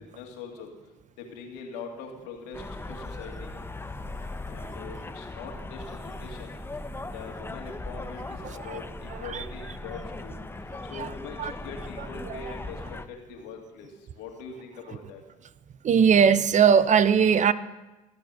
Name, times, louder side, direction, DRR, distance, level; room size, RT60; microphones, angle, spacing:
voice 1, 0.1-0.7 1.2-2.6 2.9-3.5 4.5-6.6 7.1-10.4 10.9-13.9 14.2-15.2, left 5 dB, 80° left, 2 dB, 2.3 m, -42 dB
sound 1, 2.5-13.1, left 2 dB, 15° left, 0.7 m, -38 dB
voice 2, 8.4-8.8 9.2-9.4 10.9-11.1 11.4-11.5 12.3-12.4 15.8-17.5, right 7 dB, 45° right, 15 dB, 0.7 m, -20 dB
15.0 x 7.2 x 6.4 m, 1.1 s
hypercardioid pair, 65°, 18 cm